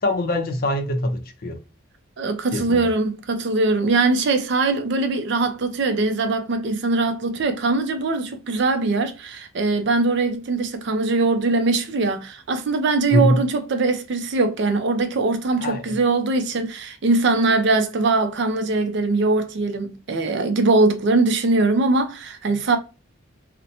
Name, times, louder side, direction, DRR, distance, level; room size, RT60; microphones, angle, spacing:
voice 1, 0.0-1.6 2.5-2.9 13.1-13.4 15.6-15.8, left 1 dB, 45° left, 0.5 m, -22 dB
voice 2, 2.2-22.8, right 3 dB, 55° right, 0.4 m, -21 dB
2.7 x 2.1 x 2.6 m
head